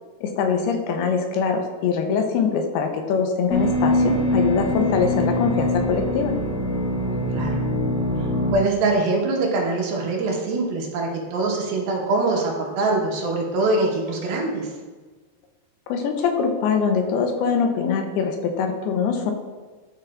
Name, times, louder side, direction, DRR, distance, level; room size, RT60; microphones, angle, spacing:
voice 1, 0.2-6.3 15.9-19.3, left 6 dB, 85° left, 5 dB, 2.7 m, -23 dB
sound 1, 3.5-8.5, left 1 dB, 25° left, 2.1 m, -23 dB
voice 2, 7.0-7.6 8.5-14.7, right 3 dB, 75° right, -1 dB, 2.9 m, -23 dB
11.5 x 6.6 x 2.5 m, 1.4 s
omnidirectional pair, 4.6 m